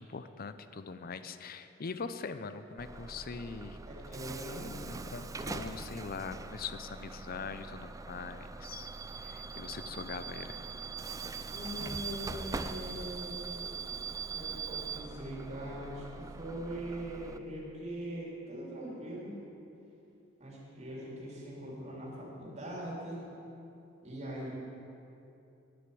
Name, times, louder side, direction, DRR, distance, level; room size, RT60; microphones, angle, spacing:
voice 1, 0.0-3.8 4.9-8.9 9.2-10.6, left 5 dB, 50° left, 11 dB, 0.6 m, -42 dB
Bus / Alarm, 2.8-17.4, right 4 dB, 15° right, 0.4 m, -42 dB
voice 2, 3.9-4.7 11.5-14.0 14.3-19.4 20.4-23.2 24.0-24.6, right 1 dB, 35° right, -4 dB, 3.3 m, -42 dB
9.6 x 9.5 x 8.5 m, 2.8 s
head